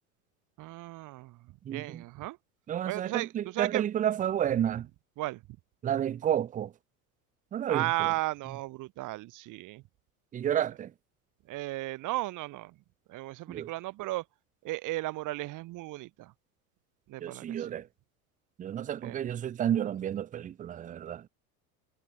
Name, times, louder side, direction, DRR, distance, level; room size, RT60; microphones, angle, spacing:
voice 1, 0.6-2.4 2.9-3.8 5.2-5.4 7.7-9.8 11.5-12.7 13.1-14.2 14.6-16.3 17.1-17.8 19.0-19.2, right 18 dB, 45° right, 0.9 m, -35 dB
voice 2, 1.6-2.0 2.7-4.9 5.8-6.7 7.5-8.1 10.3-10.9 13.5-13.7 17.2-17.9 18.6-21.3, right 10 dB, 20° right, 0.4 m, -31 dB
hypercardioid pair, 95°, 43 cm